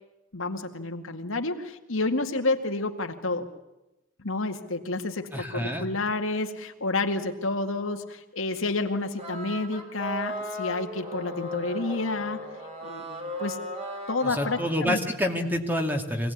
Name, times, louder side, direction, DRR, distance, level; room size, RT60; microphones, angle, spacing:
voice 1, 0.3-3.5 4.2-12.4 12.8-13.6 14.1-15.0, left 2 dB, 75° left, 4 dB, 2.2 m, -30 dB
voice 2, 5.3-5.9 14.2-16.3, equal, 10° right, 4 dB, 2.4 m, -28 dB
sound 1, 9.2-14.6, equal, 35° right, 4.5 m, -36 dB
25.0 x 18.5 x 9.7 m, 0.97 s
head